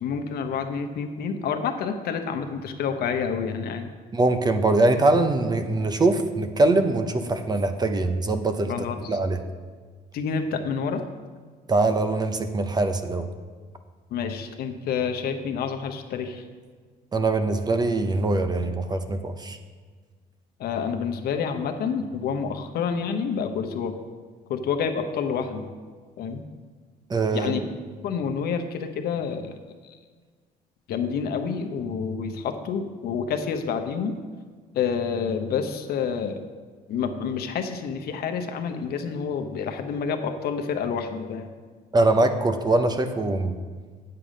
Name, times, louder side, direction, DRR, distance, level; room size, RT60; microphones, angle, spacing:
voice 1, 0.0-3.9 8.7-9.2 10.1-11.0 14.1-16.4 20.6-23.9 24.5-25.7 26.2-26.4 27.3-27.7 28.0-29.6 29.8-30.0 30.9-34.2 34.7-36.4 36.9-41.5, left 6 dB, 65° left, 6 dB, 0.9 m, -28 dB
voice 2, 4.1-8.7 9.1-9.4 11.7-13.3 17.1-19.6 27.1-27.5 41.9-43.6, right 2 dB, 25° right, 8 dB, 0.7 m, -22 dB
8.2 x 7.7 x 5.1 m, 1.5 s
cardioid pair, 110°, 17 cm